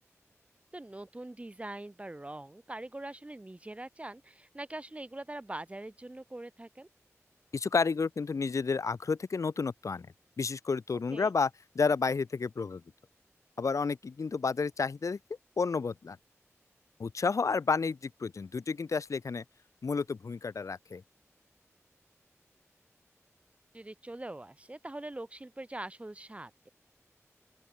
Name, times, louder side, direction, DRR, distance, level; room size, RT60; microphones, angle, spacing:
voice 1, 0.7-6.9 11.1-11.3 23.7-26.7, right 1 dB, 25° right, 7.3 m, -43 dB
voice 2, 7.5-10.1 10.4-11.5 11.7-12.8 13.6-15.2 15.6-16.2 17.0-19.4 19.8-21.0, left 4 dB, 80° left, 2.3 m, -31 dB
open air
wide cardioid pair, 90°, 5 cm